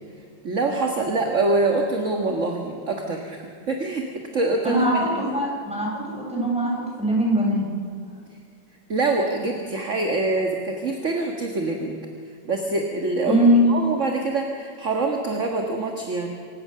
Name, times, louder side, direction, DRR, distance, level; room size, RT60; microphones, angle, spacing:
voice 1, 0.4-5.1 8.9-12.0 12.5-16.3, right 3 dB, 40° right, 3 dB, 2.0 m, -25 dB
voice 2, 4.6-6.7 7.0-7.7 13.3-13.7, equal, 5° right, -4 dB, 7.4 m, -21 dB
27.5 x 16.0 x 6.8 m, 2.4 s
omnidirectional pair, 2.0 m